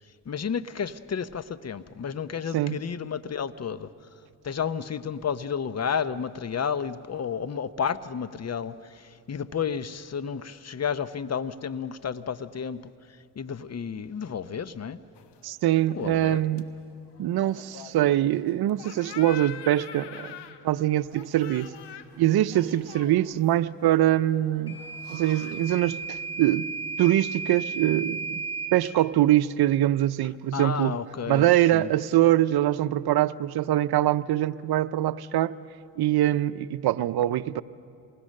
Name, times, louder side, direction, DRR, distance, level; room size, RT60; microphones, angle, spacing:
voice 1, 0.2-3.9 4.4-15.0 15.9-16.4 30.5-31.5 31.7-31.9, left 7 dB, 40° left, 0.9 m, -31 dB
sound 1, 15.2-25.8, left 9 dB, 75° left, 1.4 m, -46 dB
voice 2, 15.4-16.7 17.2-20.3 20.6-21.7 22.2-24.8 25.1-26.7 27.0-28.4 28.7-31.0 31.3-35.6 36.0-37.6, right 13 dB, 65° right, 0.7 m, -23 dB
Microwave oven / Alarm, 24.7-28.8, right 4 dB, 10° left, 4.4 m, -34 dB
27.5 x 20.5 x 6.6 m
supercardioid pair, 65°, 41 cm